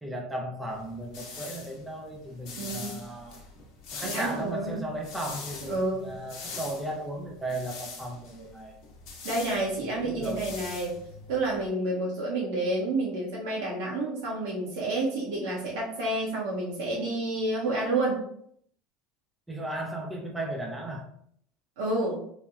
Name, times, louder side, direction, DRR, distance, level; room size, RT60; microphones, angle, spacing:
voice 1, 0.0-3.4 3.9-8.7 10.0-10.4 19.5-21.1, right 1 dB, 10° right, -1 dB, 0.5 m, -35 dB
sound 1, 0.7-11.7, left 4 dB, 60° left, 0.7 m, -43 dB
voice 2, 2.6-2.9 4.0-4.8 5.6-6.1 9.2-11.0 11.3-18.2 21.8-22.2, right 2 dB, 80° right, -5 dB, 0.8 m, -29 dB
3.2 x 2.1 x 2.4 m, 0.66 s
supercardioid pair, 115°, 0 cm